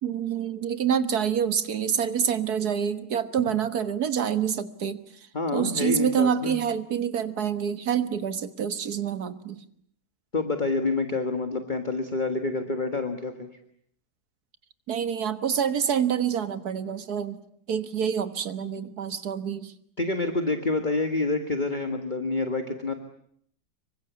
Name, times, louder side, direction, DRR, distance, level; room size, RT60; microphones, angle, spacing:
voice 1, 0.0-5.0 5.5-9.6 14.9-17.4 17.7-19.7, right 8 dB, 65° right, 12 dB, 1.9 m, -27 dB
voice 2, 5.3-6.6 10.3-13.5 20.0-22.9, left 3 dB, 30° left, 7 dB, 1.8 m, -27 dB
26.5 x 23.5 x 8.3 m, 0.65 s
omnidirectional pair, 1.8 m